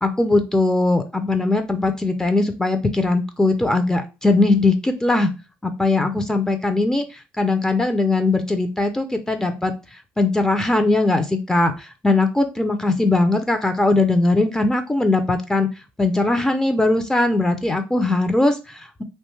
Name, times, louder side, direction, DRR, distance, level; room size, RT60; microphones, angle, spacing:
voice 1, 0.0-5.3 5.6-9.7 10.2-15.7 16.0-19.0, left 2 dB, 10° left, 7 dB, 0.4 m, -20 dB
2.7 x 2.1 x 3.1 m, 0.28 s
cardioid pair, 95°, 5 cm